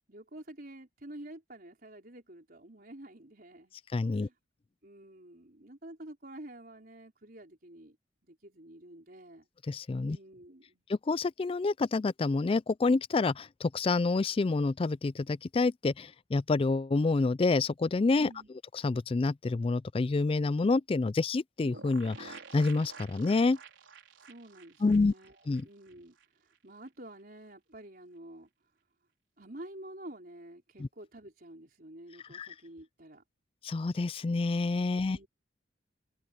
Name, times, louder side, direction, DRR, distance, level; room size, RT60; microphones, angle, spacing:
voice 1, 0.1-3.7 4.1-4.3 4.8-8.0 8.2-9.5 10.0-10.8 18.2-18.5 24.2-28.5 29.4-33.2 34.9-35.3, right 1 dB, 50° right, 4.6 m, -49 dB
voice 2, 3.9-4.3 9.7-10.2 10.9-18.3 18.8-23.6 24.8-25.1 25.5-25.7 30.8-30.9 32.3-32.5 33.6-35.2, left 3 dB, 30° left, 0.3 m, -28 dB
sound 1, 21.6-26.3 26.5-26.6 26.9-27.0, right 4 dB, 85° right, 4.4 m, -50 dB
head